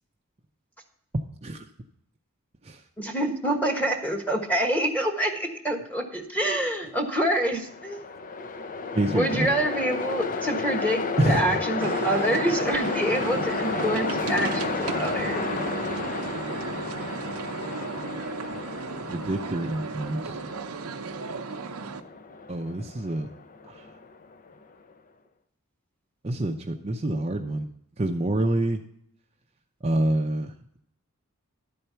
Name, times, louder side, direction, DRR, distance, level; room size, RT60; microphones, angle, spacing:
voice 1, 3.0-8.0 9.1-15.4, right 1 dB, 5° left, 3 dB, 1.3 m, -26 dB
Train, 7.4-24.6, left 4 dB, 40° left, 0.5 m, -32 dB
voice 2, 8.9-9.5 11.2-11.6 18.5-18.6 19.0-20.4 22.5-23.3 23.7-23.9 26.2-27.7 28.0-28.8 29.8-30.5, right 1 dB, 30° right, 3 dB, 0.6 m, -27 dB
sound 1, 11.8-22.0, right 4 dB, 85° right, 0.7 m, -34 dB
11.5 x 4.5 x 6.8 m, 0.71 s
head